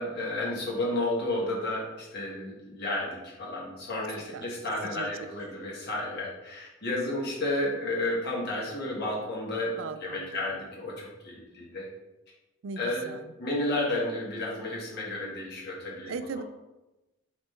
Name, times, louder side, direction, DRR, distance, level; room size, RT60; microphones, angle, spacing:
voice 1, 0.0-9.7 10.0-11.9 12.8-13.1 13.4-16.1, left 1 dB, 55° left, -5 dB, 1.4 m, -32 dB
voice 2, 4.8-5.6 9.8-10.6 12.6-13.3 16.0-16.4, right 5 dB, 75° right, 10 dB, 0.4 m, -39 dB
5.3 x 3.1 x 3.2 m, 1.0 s
head